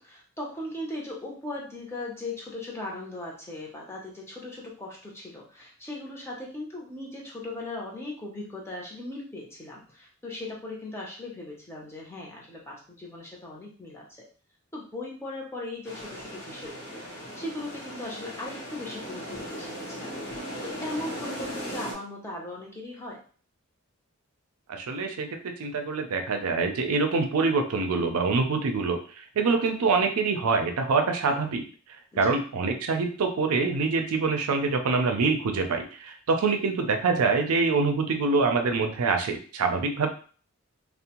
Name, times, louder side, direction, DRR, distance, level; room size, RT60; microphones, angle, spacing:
voice 1, 0.0-14.0 14.7-17.0 17.4-20.1 20.6-23.2 32.1-32.2, left 2 dB, 10° left, -3 dB, 0.5 m, -38 dB
sound 1, 15.8-21.9, equal, 55° left, 0.7 m, -38 dB
voice 2, 24.7-31.6 32.2-40.1, right 4 dB, 85° right, 5 dB, 0.4 m, -25 dB
2.5 x 2.0 x 2.9 m, 0.41 s
head